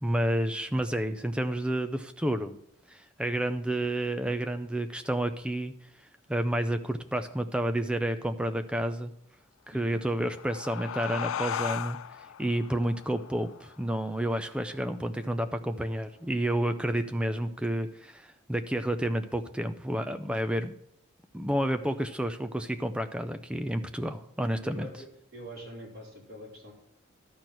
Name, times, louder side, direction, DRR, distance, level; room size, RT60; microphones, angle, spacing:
voice 1, 0.0-2.6 2.9-5.7 6.3-9.1 9.7-12.0 12.4-20.7 21.3-24.9, right 1 dB, 5° right, 8 dB, 0.5 m, -30 dB
sound 1, 9.9-15.1, left 9 dB, 80° left, 0.3 m, -38 dB
voice 2, 24.6-25.1 25.3-26.7, equal, 45° right, -5 dB, 4.0 m, -44 dB
12.0 x 4.4 x 7.7 m, 0.74 s
head